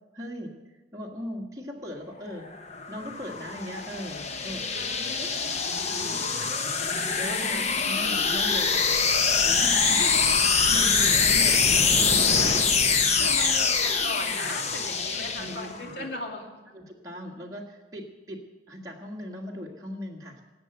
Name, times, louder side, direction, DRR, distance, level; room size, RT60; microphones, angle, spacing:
voice 1, 0.1-0.5 0.9-2.5 2.9-4.7 5.0-5.3 5.9-6.6 7.2-8.9 9.2-10.0 10.7-11.8 12.9-13.4 15.4-15.7 16.0-16.1 16.7-20.4, equal, 20° right, -3 dB, 1.6 m, -39 dB
sound 1, 2.5-15.9, left 5 dB, 40° left, 0.9 m, -24 dB
voice 2, 4.8-5.9 7.4-7.6 8.0-8.1 9.9-10.4 11.5-11.6 12.8-16.5, left 1 dB, 70° left, 2 dB, 2.4 m, -38 dB
19.0 x 7.8 x 8.0 m, 1.1 s
head